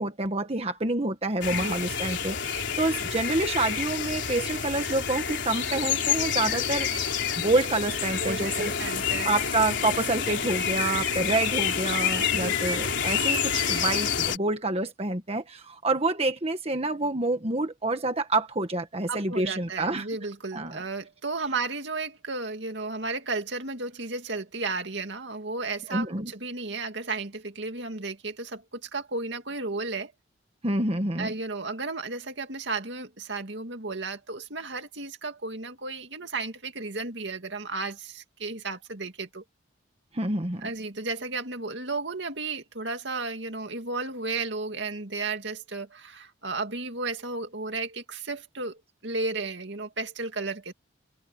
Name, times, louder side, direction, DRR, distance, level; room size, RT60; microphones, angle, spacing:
voice 1, 0.0-6.9 7.4-8.8 9.2-20.1 20.5-20.8 25.9-26.3 30.6-31.3 40.1-40.7, right 2 dB, 30° right, 1.5 m, -28 dB
sound 1, 1.4-14.4, left 7 dB, 65° left, 4.1 m, -28 dB
voice 2, 8.2-9.3 12.1-12.6 19.1-30.1 31.2-39.4 40.6-48.8 49.0-50.7, right 3 dB, 65° right, 2.4 m, -33 dB
head